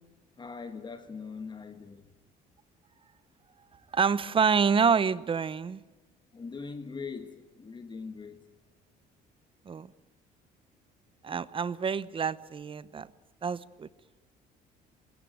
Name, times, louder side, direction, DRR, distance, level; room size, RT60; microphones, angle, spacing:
voice 1, 0.4-2.1 6.3-8.4, left 5 dB, 25° left, 1.6 m, -41 dB
voice 2, 3.9-5.8 9.7-9.9 11.2-13.1 13.4-13.9, right 6 dB, 30° right, 0.9 m, -27 dB
24.5 x 21.5 x 9.2 m
cardioid pair, 110°, 17 cm